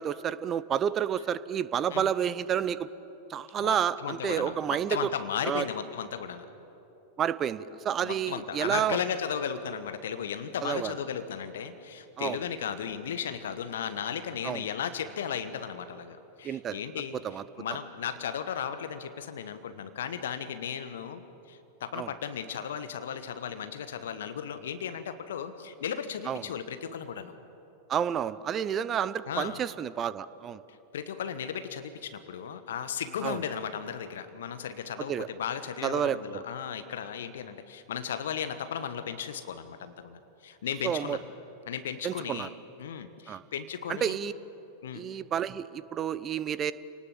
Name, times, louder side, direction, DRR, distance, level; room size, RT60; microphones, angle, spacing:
voice 1, 0.0-2.9 3.3-5.1 5.4-5.6 7.2-9.0 10.6-10.9 12.2-12.4 14.4-14.6 16.4-16.8 17.2-17.4 21.9-22.1 26.3-26.4 27.9-30.6 33.2-33.4 35.1-35.3 35.8-36.5 40.8-41.2 42.0-42.5 43.3-43.4 43.9-44.3 44.9-46.7, right 9 dB, 25° right, 16 dB, 0.8 m, -30 dB
voice 2, 3.6-4.6 4.9-6.4 8.0-21.2 21.5-27.3 29.2-29.6 30.7-41.2 41.7-42.5 42.8-44.2 44.8-45.0, left 8 dB, 60° left, 10 dB, 1.2 m, -35 dB
28.0 x 19.0 x 7.5 m, 3.0 s
figure-of-eight pair, 90°, 0 cm